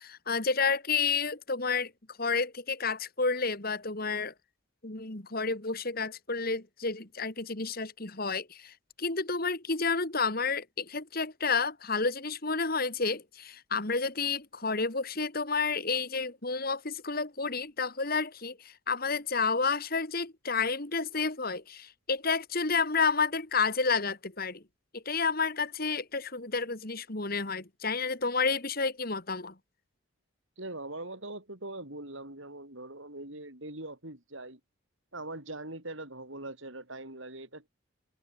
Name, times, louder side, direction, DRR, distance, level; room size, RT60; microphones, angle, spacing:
voice 1, 0.0-1.9 2.2-4.3 4.8-24.6 24.9-29.5, left 4 dB, 45° left, 2.2 m, -30 dB
voice 2, 30.6-34.6 35.1-37.7, right 2 dB, 65° right, 5.7 m, -42 dB
head